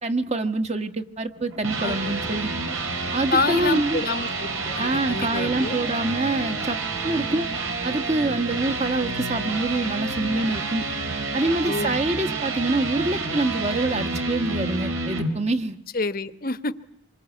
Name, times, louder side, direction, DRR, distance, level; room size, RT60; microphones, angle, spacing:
voice 1, 0.0-2.5 3.1-4.0 4.8-6.8 7.0-7.5 7.8-10.8 11.3-15.8, right 2 dB, 30° right, 8 dB, 1.4 m, -25 dB
sound 1, 1.4-15.3, right 3 dB, 75° right, 4.0 m, -29 dB
voice 2, 1.8-2.2 3.3-5.8 11.6-12.0 15.9-16.7, left 3 dB, 45° left, 11 dB, 1.1 m, -28 dB
26.5 x 24.0 x 8.4 m, 0.70 s
head